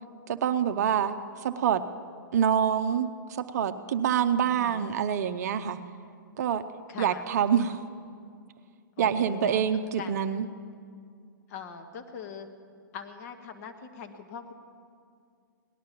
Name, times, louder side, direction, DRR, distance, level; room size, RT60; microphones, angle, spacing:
voice 1, 0.3-1.2 1.4-1.8 2.3-3.1 3.4-5.8 6.4-6.6 7.0-7.8 9.0-10.5, right 8 dB, 50° right, 9 dB, 0.6 m, -26 dB
voice 2, 4.4-4.9 6.9-7.3 9.0-9.6 10.0-10.2 11.5-12.5 12.9-14.5, left 6 dB, 45° left, 6 dB, 1.4 m, -41 dB
18.5 x 11.0 x 5.9 m, 2.3 s
figure-of-eight pair, 110°, 11 cm